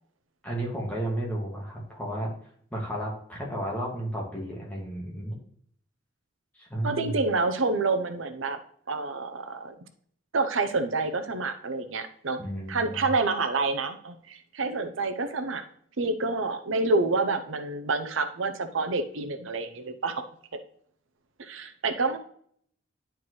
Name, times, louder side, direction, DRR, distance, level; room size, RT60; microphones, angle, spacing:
voice 1, 0.4-2.3 2.7-5.4 6.5-7.2 12.4-13.1, right 1 dB, 10° left, -4 dB, 1.9 m, -33 dB
voice 2, 6.8-8.6 8.9-9.7 10.3-15.6 16.0-20.2 21.4-22.2, right 3 dB, 85° right, 8 dB, 0.7 m, -28 dB
10.5 x 4.5 x 3.1 m, 0.62 s
head